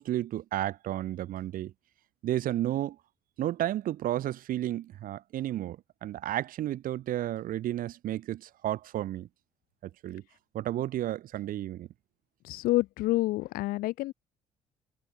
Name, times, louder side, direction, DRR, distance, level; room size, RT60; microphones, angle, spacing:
voice 1, 0.0-1.7 2.2-3.0 3.4-9.3 9.8-10.2 10.5-11.9, right 13 dB, 70° right, 5.6 m, -32 dB
voice 2, 12.4-14.1, left 18 dB, 75° left, 0.8 m, -28 dB
hypercardioid pair, 60°, 15 cm